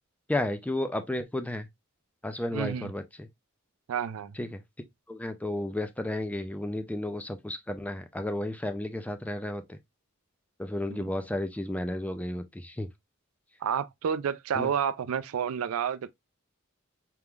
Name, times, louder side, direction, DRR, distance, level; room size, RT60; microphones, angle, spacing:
voice 1, 0.3-1.7 2.2-3.3 4.4-4.6 5.1-9.8 10.6-12.9 14.6-14.7, left 1 dB, 5° left, 0.4 m, -32 dB
voice 2, 2.5-2.9 3.9-4.4 10.9-11.1 13.6-16.1, right 7 dB, 80° right, 0.4 m, -30 dB
4.5 x 3.6 x 2.3 m
head